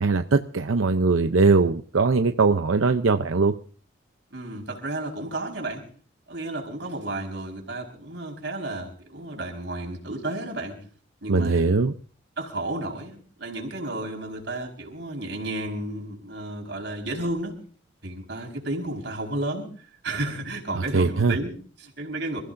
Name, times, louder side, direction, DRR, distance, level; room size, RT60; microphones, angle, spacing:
voice 1, 0.0-3.5 11.3-11.9 20.7-21.3, right 4 dB, 85° right, 8 dB, 0.7 m, -21 dB
voice 2, 4.3-5.8 6.3-10.8 11.2-11.6 12.4-17.5 18.0-19.7 20.0-22.4, right 2 dB, 60° right, 1 dB, 4.7 m, -32 dB
28.0 x 15.5 x 2.6 m, 0.43 s
head